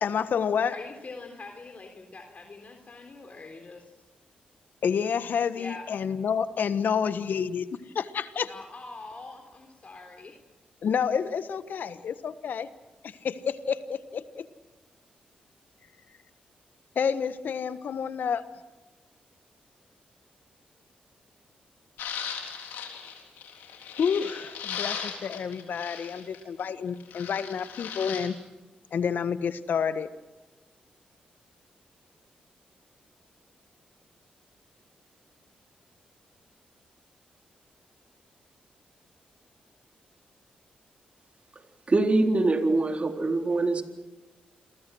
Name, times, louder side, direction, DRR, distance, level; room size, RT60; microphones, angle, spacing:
voice 1, 0.0-0.7 4.8-7.7 7.9-8.5 10.8-12.7 13.0-14.5 16.9-18.4 24.0-28.3 28.9-30.1, left 7 dB, 70° left, 12 dB, 1.3 m, -29 dB
voice 2, 0.7-3.9 5.6-5.8 8.4-10.4, left 3 dB, 45° left, 3 dB, 3.6 m, -43 dB
sound 1, 22.0-26.6 27.0-28.3, left 8 dB, 85° left, 3.8 m, -37 dB
voice 3, 41.9-43.8, right 2 dB, 40° right, 4 dB, 3.9 m, -23 dB
28.5 x 22.5 x 6.4 m, 1.2 s
supercardioid pair, 40°, 3 cm